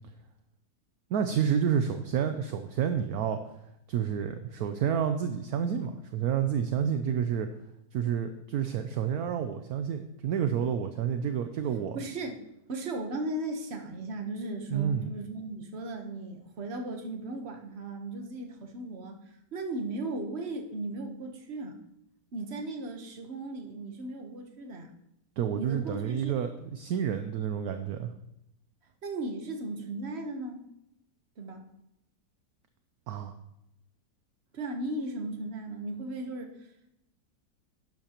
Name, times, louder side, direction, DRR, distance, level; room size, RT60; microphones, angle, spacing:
voice 1, 1.1-3.4 3.9-7.5 7.9-12.0 14.7-15.1 25.4-28.1 33.1-33.3, right 8 dB, 70° right, 8 dB, 1.0 m, -29 dB
voice 2, 11.9-12.4 12.7-21.8 22.3-24.9 25.6-26.3 29.0-30.6 31.4-31.6 34.5-36.7, right 2 dB, 40° right, 4 dB, 1.3 m, -36 dB
11.5 x 10.5 x 3.0 m, 0.83 s
omnidirectional pair, 1.9 m